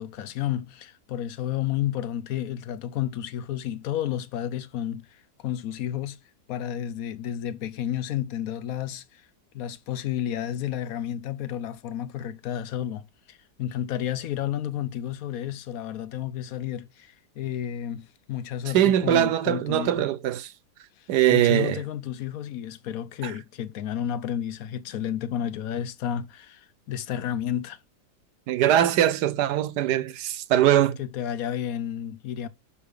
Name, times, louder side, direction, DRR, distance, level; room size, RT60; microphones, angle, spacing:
voice 1, 0.0-6.2 6.5-9.3 9.5-20.1 21.0-27.8 31.0-32.5, left 10 dB, 65° left, 1.1 m, -31 dB
voice 2, 18.7-20.5 21.1-21.8 23.2-23.3 28.5-31.0, right 11 dB, 75° right, 1.2 m, -21 dB
6.6 x 5.7 x 5.1 m
omnidirectional pair, 1.8 m